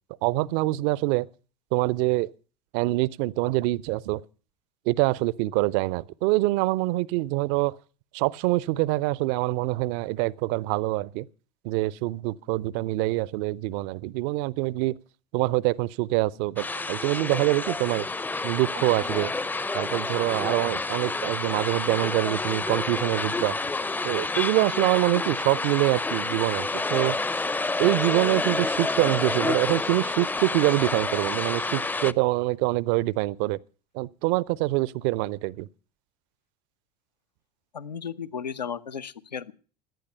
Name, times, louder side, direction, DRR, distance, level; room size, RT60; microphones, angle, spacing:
voice 1, 0.2-1.3 1.7-2.3 2.7-4.2 4.9-7.8 8.1-11.3 11.6-14.9 15.3-18.1 18.4-19.3 19.7-23.6 24.0-27.2 27.8-33.6 33.9-35.7, right 20 dB, 55° right, 0.7 m, -25 dB
sound 1, 16.6-32.1, left 3 dB, 10° left, 0.6 m, -29 dB
voice 2, 37.7-39.5, left 7 dB, 85° left, 1.0 m, -34 dB
17.0 x 12.0 x 5.5 m
figure-of-eight pair, 75°, 21 cm